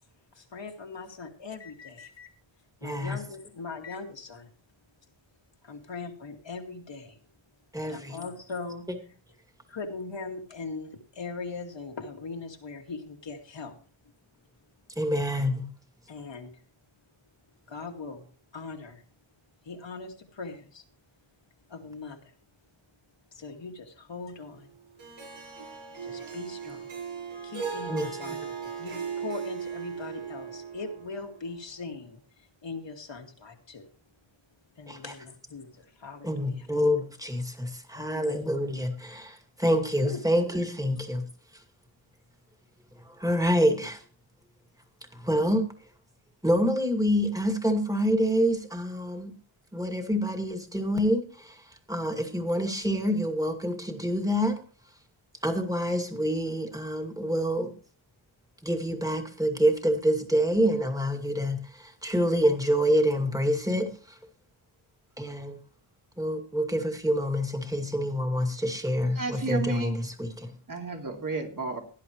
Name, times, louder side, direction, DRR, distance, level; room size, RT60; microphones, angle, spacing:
voice 1, 0.4-2.3 2.8-4.5 5.6-7.2 7.8-8.9 9.7-13.7 16.1-16.5 17.7-18.3 18.5-19.0 19.6-20.8 21.7-22.3 23.3-24.7 26.0-27.0 27.4-28.4 28.8-32.2 32.6-33.9 34.8-36.7 37.9-38.4 40.0-40.2, left 4 dB, 60° left, 2.3 m, -40 dB
voice 2, 2.8-3.2 7.7-8.2 15.0-15.7 27.9-28.7 34.9-35.1 36.2-41.2 43.1-44.0 45.1-45.7 46.4-49.3 49.7-54.6 55.4-57.7 58.6-64.2 65.2-65.6 66.2-70.5, equal, 5° right, 2.3 m, -27 dB
Harp, 25.0-31.4, right 6 dB, 90° right, 6.7 m, -37 dB
voice 3, 69.2-69.9 70.7-71.8, right 4 dB, 40° right, 2.8 m, -32 dB
18.0 x 11.0 x 3.1 m
wide cardioid pair, 115°, 50 cm